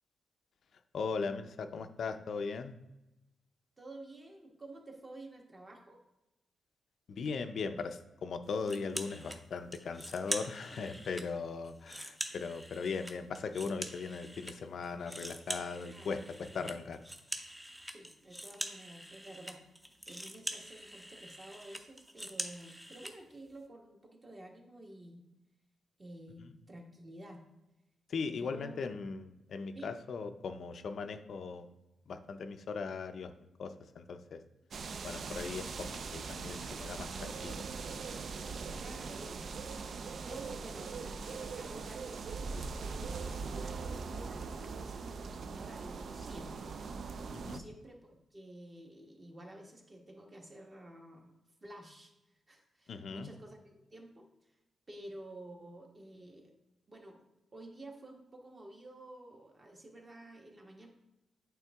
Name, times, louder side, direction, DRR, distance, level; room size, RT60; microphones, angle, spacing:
voice 1, 0.9-2.7 7.1-17.0 26.4-26.6 28.1-31.7 32.1-33.3 33.6-34.4 35.0-37.7 47.3-47.6 52.9-53.3, left 5 dB, 60° left, 8 dB, 0.4 m, -39 dB
voice 2, 3.8-6.0 10.3-10.4 11.0-11.2 15.9-16.1 16.5-16.6 17.9-19.6 20.1-25.2 26.0-27.4 28.3-29.0 29.7-29.9 38.7-46.8 47.4-51.3 51.6-52.1 52.5-53.6 53.9-54.3 54.9-56.5 56.9-57.2 57.5-60.9, right 1 dB, 25° right, 1 dB, 1.2 m, -51 dB
sound 1, 8.6-9.4 9.7-11.3 11.6-14.5 14.8-23.1, equal, 10° right, 0.6 m, -43 dB
sound 2, 34.7-47.6, right 4 dB, 55° right, 0.4 m, -41 dB
8.5 x 3.6 x 3.5 m, 0.95 s
cardioid pair, 120°, 0 cm